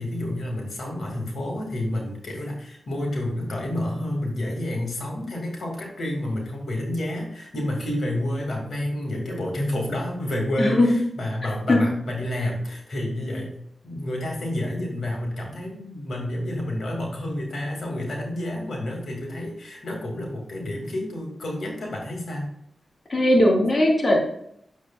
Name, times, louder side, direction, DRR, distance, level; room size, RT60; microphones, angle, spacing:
voice 1, 0.0-13.6 13.8-22.5, left 1 dB, 70° left, -1 dB, 2.4 m, -29 dB
voice 2, 10.6-10.9 11.7-11.8 23.1-24.2, left 1 dB, 45° left, -1 dB, 2.4 m, -18 dB
9.9 x 7.1 x 2.4 m, 0.71 s
cardioid pair, 55°, 0 cm